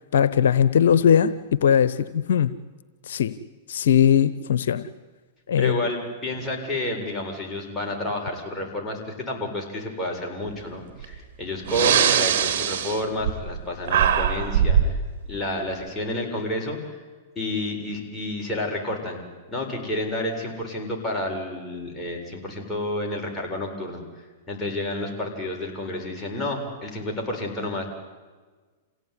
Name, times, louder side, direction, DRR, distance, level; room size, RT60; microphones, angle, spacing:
voice 1, 0.1-2.5 3.1-3.3 3.7-4.8 5.5-5.8, left 8 dB, 75° left, 14 dB, 0.9 m, -19 dB
voice 2, 5.6-15.0 15.3-17.0 17.4-19.2 19.5-27.9, left 1 dB, 10° left, -1 dB, 7.5 m, -30 dB
Breathing, 11.0-11.1 11.6-13.6 13.9-15.0, right 8 dB, 65° right, 3.0 m, -21 dB
28.0 x 17.0 x 9.8 m, 1.4 s
hypercardioid pair, 115°, 0 cm